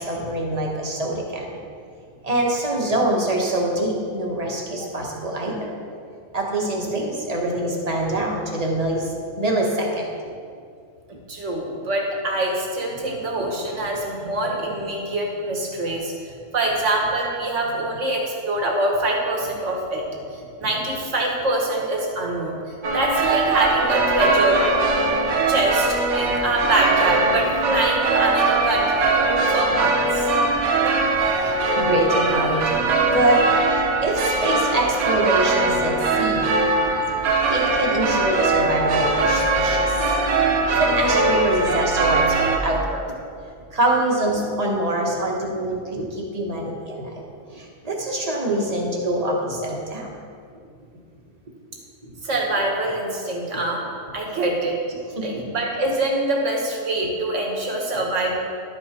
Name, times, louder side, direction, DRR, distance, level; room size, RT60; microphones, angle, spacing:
voice 1, 0.0-1.6 2.2-5.7 6.3-10.1 31.4-36.5 37.5-40.0 40.7-43.1 43.7-47.2 47.5-50.1 52.0-52.1 55.2-55.4, right 1 dB, 30° right, -1 dB, 1.3 m, -24 dB
voice 2, 11.3-20.1 20.3-22.6 22.9-24.7 25.5-30.3 30.7-31.0 52.2-53.9 54.1-54.8 55.2-58.4, right 2 dB, 60° right, -1 dB, 1.7 m, -24 dB
sound 1, 22.8-42.6, right 3 dB, 90° right, 1.3 m, -21 dB
12.0 x 5.4 x 4.3 m, 2.3 s
omnidirectional pair, 1.5 m